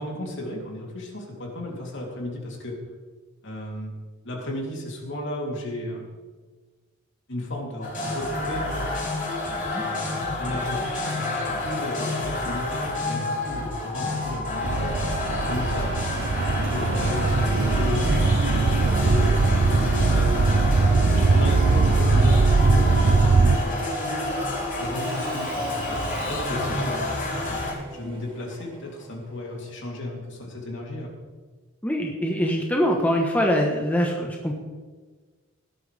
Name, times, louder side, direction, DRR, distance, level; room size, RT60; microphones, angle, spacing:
voice 1, 0.0-2.8 3.4-3.9 4.2-6.2 7.3-8.8 9.8-15.1 15.4-15.9 16.5-20.6 20.9-23.9 24.8-27.6 27.9-31.1, left 1 dB, 55° left, -1 dB, 3.3 m, -34 dB
sound 1, 7.8-27.7, left 2 dB, 40° left, 5.3 m, -29 dB
sound 2, 14.6-23.6, right 3 dB, 55° right, 0.5 m, -20 dB
Engine / Mechanisms / Drill, 23.3-29.9, right 2 dB, 25° right, 2.3 m, -42 dB
voice 2, 31.8-34.5, equal, 5° left, 0 dB, 1.2 m, -24 dB
18.0 x 12.5 x 3.5 m, 1.4 s
head